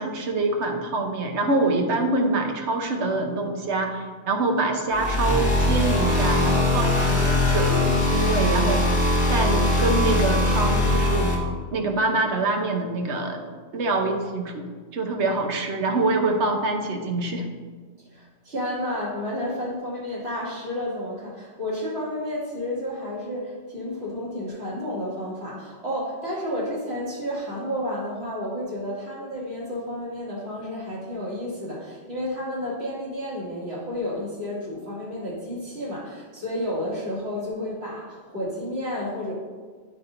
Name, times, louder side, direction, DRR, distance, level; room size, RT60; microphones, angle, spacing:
voice 1, 0.0-8.9 9.3-11.4 11.7-13.4 13.7-14.7 14.9-17.5, right 2 dB, 85° right, 4 dB, 1.2 m, -25 dB
sound 1, 4.9-11.3, left 1 dB, 60° left, 1.7 m, -21 dB
voice 2, 18.1-39.3, left 1 dB, 70° right, -7 dB, 2.6 m, -31 dB
13.0 x 4.5 x 2.6 m, 1.5 s
omnidirectional pair, 1.1 m